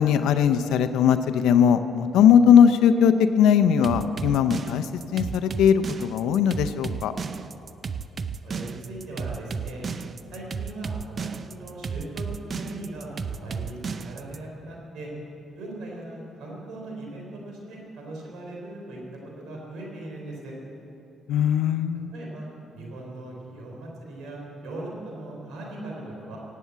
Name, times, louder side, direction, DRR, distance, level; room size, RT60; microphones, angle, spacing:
voice 1, 0.0-7.1 21.3-22.1, left 8 dB, 85° left, 9 dB, 0.5 m, -19 dB
sound 1, 3.8-14.4, right 6 dB, 45° right, 0.5 m, -33 dB
voice 2, 8.4-9.9 10.3-15.1 15.6-19.0 19.4-20.5 22.1-26.4, right 2 dB, 85° right, -2 dB, 3.7 m, -39 dB
16.5 x 8.4 x 8.1 m, 2.9 s
cardioid pair, 90°, 0 cm